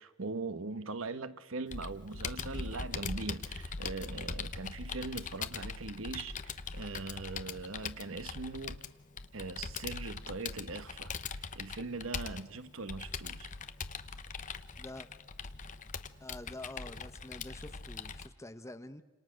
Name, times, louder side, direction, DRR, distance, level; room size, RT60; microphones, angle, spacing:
voice 1, 0.0-8.8 9.3-13.5, right 3 dB, 75° right, 1.1 m, -41 dB
Computer keyboard, 1.7-18.3, left 5 dB, 40° left, 0.9 m, -41 dB
voice 2, 14.8-15.1 16.2-19.0, left 1 dB, 15° left, 1.0 m, -47 dB
29.0 x 26.5 x 6.4 m
head